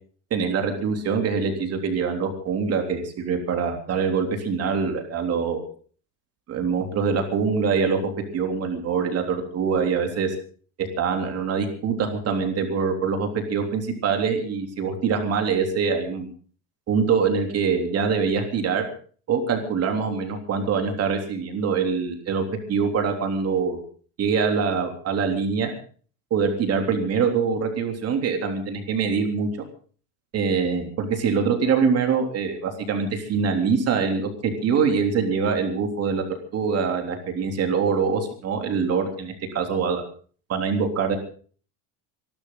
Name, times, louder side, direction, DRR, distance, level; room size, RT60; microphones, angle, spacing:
voice 1, 0.3-5.7 6.5-10.3 10.8-16.3 16.9-18.9 19.3-23.8 24.2-25.7 26.3-29.5 30.3-36.2 36.5-40.0 40.5-41.2, right 5 dB, 35° right, 5 dB, 3.4 m, -24 dB
26.0 x 12.5 x 3.9 m, 0.43 s
cardioid pair, 160°, 44 cm